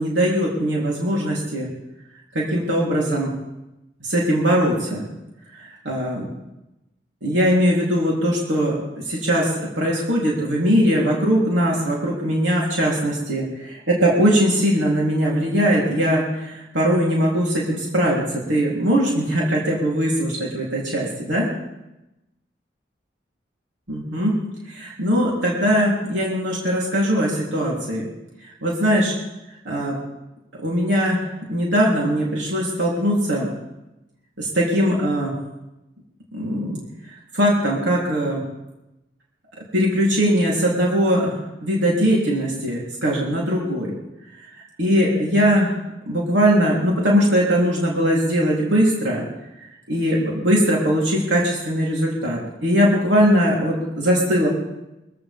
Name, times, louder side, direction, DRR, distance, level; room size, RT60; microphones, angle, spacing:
voice 1, 0.0-1.7 2.3-3.3 4.0-5.1 5.6-6.3 7.2-8.8 9.1-18.2 18.5-21.5 23.9-24.3 24.7-28.1 28.6-29.1 29.7-30.0 30.6-33.5 34.4-35.3 36.3-36.8 37.3-38.4 39.7-43.9 44.8-45.8 46.1-49.2 49.9-54.5, equal, 90° right, -5 dB, 3.6 m, -20 dB
23.5 x 15.5 x 3.7 m, 0.96 s
head